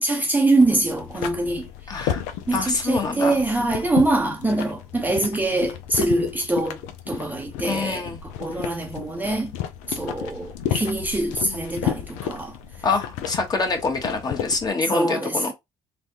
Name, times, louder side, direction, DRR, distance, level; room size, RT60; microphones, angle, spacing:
voice 1, 0.0-2.1 2.5-6.8 7.1-9.5 9.9-12.6 14.9-15.5, right 2 dB, 15° right, 0.7 m, -24 dB
sound 1, 0.6-14.7, left 10 dB, 80° left, 0.5 m, -33 dB
voice 2, 1.9-2.2 2.5-3.4 7.6-8.2 12.8-15.5, left 3 dB, 35° left, 1.1 m, -25 dB
3.3 x 2.4 x 2.8 m
supercardioid pair, 75°, 12 cm